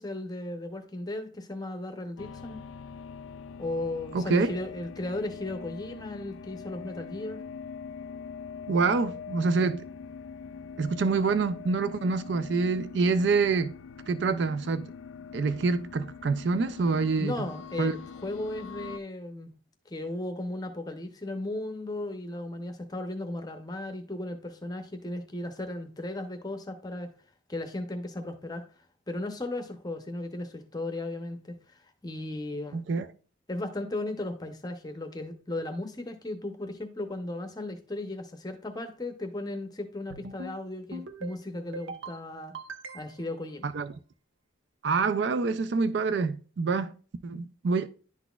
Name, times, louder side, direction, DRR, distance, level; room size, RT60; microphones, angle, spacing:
voice 1, 0.0-2.6 3.6-7.4 17.2-19.5 19.9-27.1 27.5-28.6 29.1-32.8 33.5-42.5 42.9-43.7, left 2 dB, 20° left, 0.7 m, -36 dB
sound 1, 2.2-19.0, left 6 dB, 85° left, 0.3 m, -43 dB
voice 2, 4.1-4.5 8.7-9.8 10.8-13.7 14.1-14.9 15.3-17.5 17.8-17.9 32.7-33.1 43.6-43.9 44.8-46.9 47.2-47.9, right 4 dB, 60° right, 0.4 m, -26 dB
sound 2, 40.1-40.6 40.9-41.4 41.7-42.2 42.5-43.3, right 3 dB, 80° right, 0.8 m, -41 dB
10.5 x 4.0 x 2.3 m
head